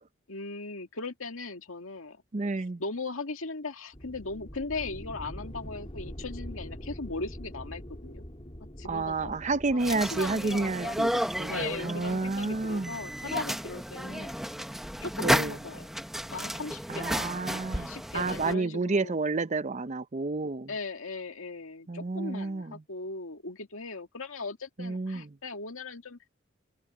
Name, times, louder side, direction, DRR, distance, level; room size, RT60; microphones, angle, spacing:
voice 1, 0.3-2.2 2.8-8.2 8.8-9.4 9.7-11.0 11.5-14.3 15.0-15.9 16.3-17.3 17.7-19.2 20.7-26.4, left 3 dB, 80° left, 2.2 m, -38 dB
voice 2, 2.3-2.8 8.8-13.0 15.2-15.5 16.9-20.7 21.9-22.8 24.8-25.3, right 3 dB, 35° right, 0.6 m, -30 dB
sound 1, 3.9-15.4, equal, 30° left, 3.2 m, -45 dB
sound 2, 9.8-18.5, equal, ahead, 1.0 m, -33 dB
head